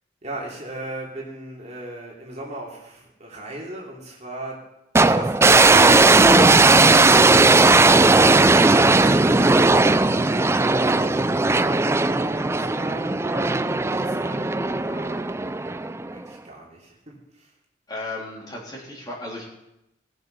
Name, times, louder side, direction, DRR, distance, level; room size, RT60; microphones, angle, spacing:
voice 1, 0.2-4.7 5.0-15.4 16.1-17.6, right 1 dB, 40° right, -3 dB, 3.0 m, -39 dB
sound 1, 5.0-16.2, right 3 dB, 15° right, 0.4 m, -17 dB
voice 2, 17.9-19.4, left 2 dB, 20° left, -3 dB, 3.6 m, -34 dB
19.5 x 6.7 x 5.8 m, 0.88 s
head